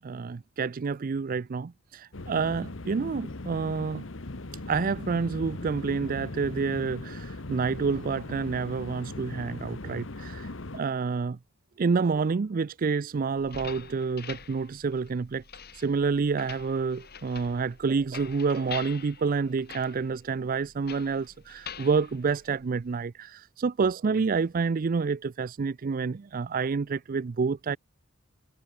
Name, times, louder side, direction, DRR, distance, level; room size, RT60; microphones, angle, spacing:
voice 1, 0.0-4.0 4.7-11.4 11.8-15.4 15.7-27.8, right 5 dB, 45° right, 0.4 m, -28 dB
sound 1, 2.1-10.8, left 2 dB, 70° left, 1.3 m, -39 dB
sound 2, 13.4-23.0, left 7 dB, 55° left, 7.0 m, -45 dB
head